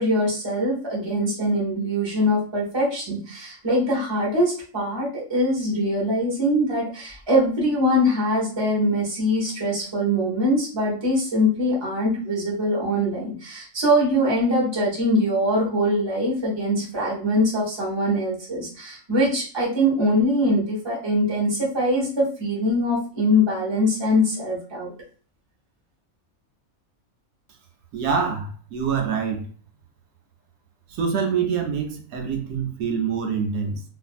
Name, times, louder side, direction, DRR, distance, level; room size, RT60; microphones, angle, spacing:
voice 1, 0.0-24.9, equal, 20° right, 0.8 m, -23 dB
voice 2, 27.9-29.4 30.9-33.8, right 6 dB, 90° right, 1.0 m, -25 dB
2.6 x 2.5 x 2.4 m
omnidirectional pair, 1.5 m